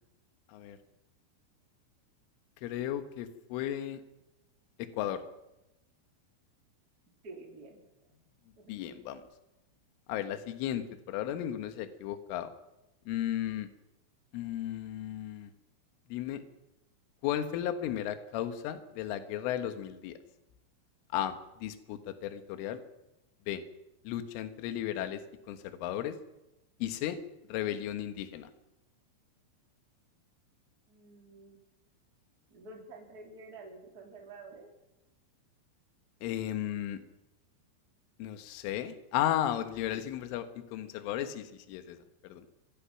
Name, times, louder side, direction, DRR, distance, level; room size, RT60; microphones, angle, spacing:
voice 1, 2.6-4.0 4.8-5.2 8.7-9.2 10.1-12.5 13.1-13.7 14.3-15.5 16.1-16.4 17.2-20.2 21.1-22.8 23.5-23.6 24.1-25.2 25.5-26.2 26.8-27.2 27.5-28.5 36.2-37.0 38.2-42.0 42.2-42.5, left 11 dB, 75° left, 9 dB, 3.8 m, -34 dB
voice 2, 7.2-7.8 8.6-8.7 30.9-31.6 32.5-34.7, right 3 dB, 20° right, 0 dB, 3.5 m, -49 dB
25.0 x 23.0 x 5.9 m, 0.95 s
omnidirectional pair, 5.8 m